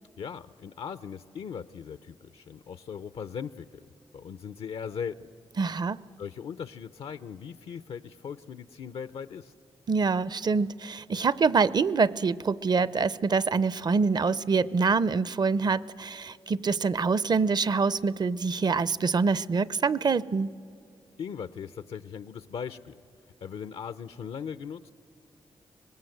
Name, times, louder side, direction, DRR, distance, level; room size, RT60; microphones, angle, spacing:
voice 1, 0.2-5.3 6.2-9.5 21.2-23.0 23.4-24.9, left 7 dB, 75° left, 14 dB, 0.5 m, -39 dB
voice 2, 5.6-6.0 9.9-20.5, right 4 dB, 45° right, 19 dB, 0.6 m, -25 dB
25.0 x 20.5 x 7.9 m, 2.3 s
cardioid pair, 60°, 10 cm